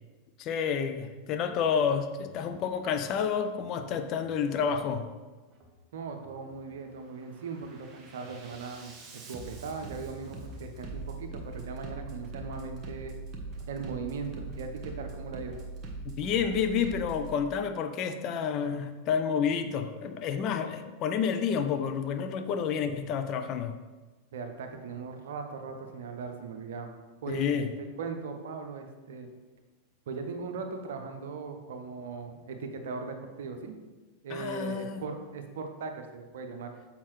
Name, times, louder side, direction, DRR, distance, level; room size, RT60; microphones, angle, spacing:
voice 1, 0.4-5.1 16.0-23.8 27.3-27.7 34.3-35.0, left 7 dB, 35° left, 8 dB, 0.5 m, -29 dB
Bass drum, 1.6-1.8 2.2-2.7 3.5-3.8 4.2-4.7 5.5-5.8 6.2-6.7 7.1-17.3, right 3 dB, 30° right, 1.1 m, -43 dB
voice 2, 5.9-13.1 13.7-15.6 24.3-26.9 27.2-27.5 28.0-29.3 30.1-33.7 34.2-36.7, right 4 dB, 60° right, 6 dB, 0.7 m, -39 dB
7.1 x 5.1 x 3.2 m, 1.3 s
figure-of-eight pair, 90°, 0 cm